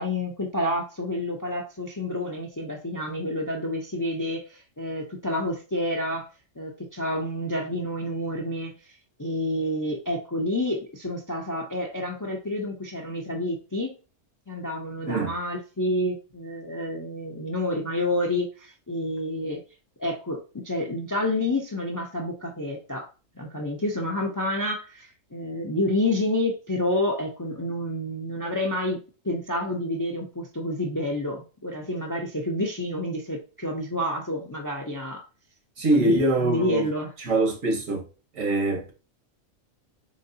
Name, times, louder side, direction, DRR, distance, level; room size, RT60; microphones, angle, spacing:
voice 1, 0.0-6.3 6.6-8.7 9.2-13.9 14.5-19.6 20.0-20.4 20.6-23.1 23.4-29.0 29.2-35.2 35.9-37.1, left 1 dB, 30° left, 0.4 m, -29 dB
voice 2, 15.0-15.3 35.8-36.9 37.2-38.0 38.3-38.9, right 2 dB, 80° right, 1.6 m, -23 dB
4.0 x 3.8 x 2.6 m
omnidirectional pair, 1.3 m